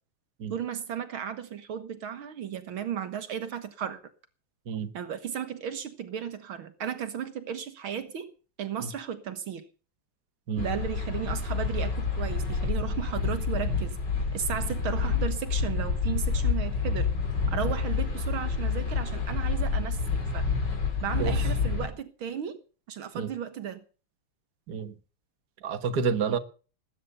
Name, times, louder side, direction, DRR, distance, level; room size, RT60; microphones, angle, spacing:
voice 1, 0.5-4.0 4.9-8.3 8.6-9.7 10.6-14.0 14.3-17.1 17.5-20.5 21.0-22.6 22.9-23.8 26.3-26.4, right 8 dB, 75° right, 2.1 m, -35 dB
sound 1, 10.6-21.9, left 4 dB, 55° left, 4.7 m, -28 dB
voice 2, 25.6-26.4, right 6 dB, 50° right, 2.0 m, -29 dB
19.5 x 9.7 x 6.8 m
omnidirectional pair, 2.3 m